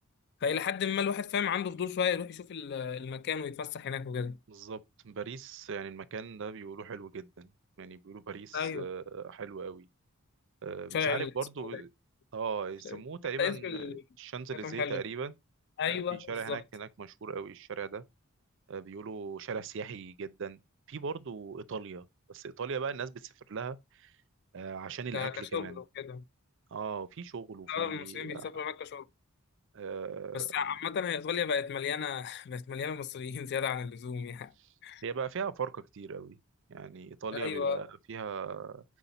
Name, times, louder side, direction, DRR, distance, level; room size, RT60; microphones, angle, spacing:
voice 1, 0.4-4.4 8.5-8.9 10.9-11.3 11.7-11.8 12.9-13.0 13.4-14.0 14.6-15.0 15.8-16.6 25.1-26.2 27.7-29.1 30.3-34.5 34.8-35.0 37.3-37.8, left 7 dB, 50° left, 0.3 m, -33 dB
voice 2, 4.5-7.5 7.8-9.9 10.6-11.9 12.3-13.8 14.2-15.4 16.1-18.0 18.7-20.6 20.9-24.1 24.5-25.8 26.7-28.5 29.7-30.5 35.0-36.4 36.7-38.8, right 5 dB, 60° right, 0.5 m, -39 dB
5.6 x 4.8 x 3.9 m
head